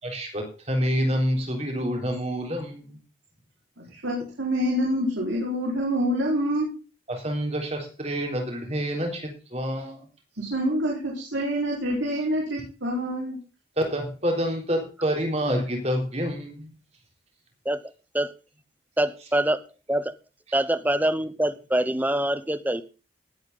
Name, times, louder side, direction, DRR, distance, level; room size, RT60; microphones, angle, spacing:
voice 1, 0.0-3.0 7.1-10.0 13.8-16.7, equal, 35° right, 2 dB, 3.7 m, -27 dB
voice 2, 3.8-6.7 10.4-13.4, equal, 80° right, -3 dB, 4.9 m, -26 dB
voice 3, 19.0-19.6 19.9-20.1 20.5-22.8, right 1 dB, 10° right, 13 dB, 0.8 m, -24 dB
19.0 x 8.6 x 4.0 m, 0.33 s
head